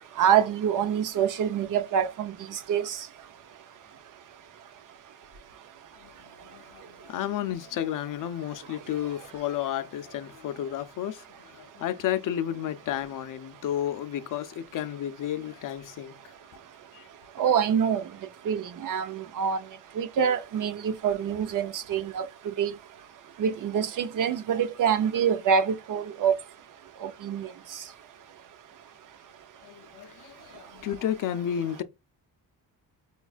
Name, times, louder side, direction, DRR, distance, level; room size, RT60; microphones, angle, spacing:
voice 1, 0.2-3.1 17.4-18.0 18.5-19.6 20.0-22.7 23.4-26.3 27.0-27.5, right 8 dB, 65° right, 0.6 m, -26 dB
voice 2, 6.0-16.3 16.9-17.1 29.6-31.8, left 10 dB, 65° left, 0.5 m, -32 dB
5.1 x 2.3 x 2.3 m
cardioid pair, 125°, 35 cm